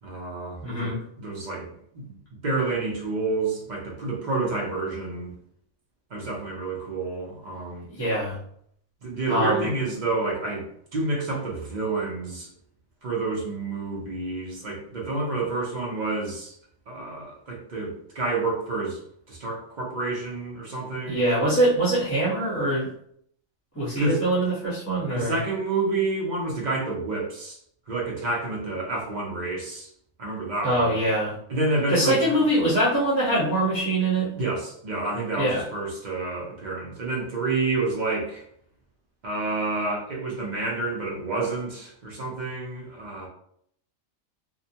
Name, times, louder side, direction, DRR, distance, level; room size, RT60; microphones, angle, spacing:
voice 1, 0.0-5.3 6.1-7.9 9.0-12.5 13.0-16.6 16.9-19.0 19.3-21.3 24.0-24.2 25.1-27.6 27.9-29.9 30.2-31.0 31.5-32.4 34.4-38.4 39.2-43.3, right 3 dB, 45° right, -3 dB, 0.6 m, -29 dB
voice 2, 0.6-1.0 7.9-8.4 9.3-9.6 21.1-22.9 23.7-25.3 30.6-31.3 31.9-34.3 35.4-35.6, right 1 dB, 15° left, -8 dB, 0.7 m, -23 dB
2.6 x 2.1 x 2.7 m, 0.67 s
omnidirectional pair, 1.4 m